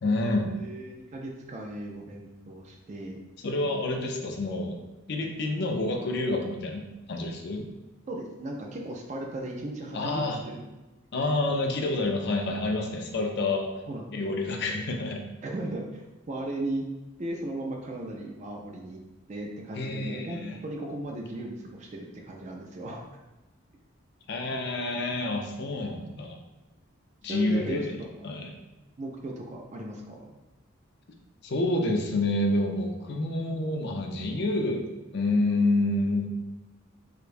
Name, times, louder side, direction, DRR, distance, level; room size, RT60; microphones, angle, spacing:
voice 1, 0.0-0.5 3.4-4.8 5.1-7.6 9.9-10.4 11.1-13.7 14.1-15.2 19.7-20.6 24.3-26.4 27.2-28.0 28.2-28.5 31.4-34.8 35.1-36.3, left 2 dB, 50° left, 1 dB, 0.5 m, -28 dB
voice 2, 0.5-3.2 8.1-10.7 13.9-14.1 15.4-16.9 17.2-19.0 19.3-23.0 27.3-28.1 29.0-30.3, right 1 dB, 35° right, 1 dB, 0.3 m, -36 dB
4.9 x 2.2 x 2.5 m, 1.1 s
head